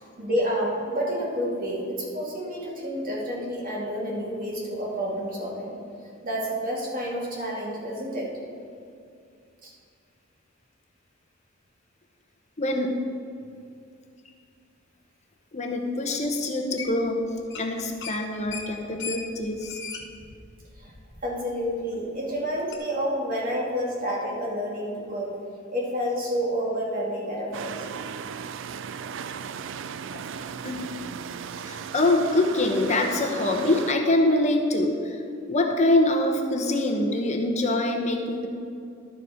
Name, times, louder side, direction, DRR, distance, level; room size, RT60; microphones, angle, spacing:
voice 1, 0.2-5.8 6.2-8.3 9.6-9.7 20.8-20.9 21.2-25.3 25.7-27.9, equal, 45° right, -4 dB, 2.6 m, -29 dB
voice 2, 12.6-13.0 15.5-17.3 17.6-19.8 30.1-30.3 30.6-30.8 31.7-35.2 35.5-38.5, left 2 dB, 35° left, 3 dB, 0.9 m, -24 dB
sound 1, 16.8-17.2 17.4-17.7 18.0-21.4 21.8-21.9 22.7-22.8, left 6 dB, 60° left, 1.1 m, -38 dB
sound 2, 27.5-33.9, right 7 dB, 65° right, 0.4 m, -36 dB
12.0 x 7.4 x 5.0 m, 2.4 s
head